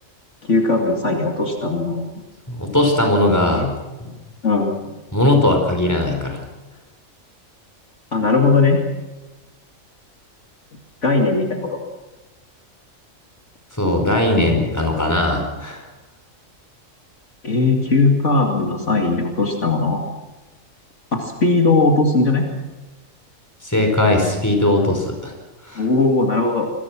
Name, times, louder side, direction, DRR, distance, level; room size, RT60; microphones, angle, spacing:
voice 1, 0.5-2.1 3.5-3.7 4.4-4.9 8.1-8.8 11.0-11.8 17.4-20.0 21.1-22.5 25.8-26.7, left 3 dB, 60° left, 2 dB, 2.7 m, -18 dB
voice 2, 2.5-3.6 4.0-4.1 5.1-6.4 13.7-15.8 23.6-25.3 25.7-25.8, left 1 dB, 10° left, 2 dB, 4.9 m, -19 dB
27.5 x 22.0 x 6.1 m, 1.1 s
omnidirectional pair, 1.4 m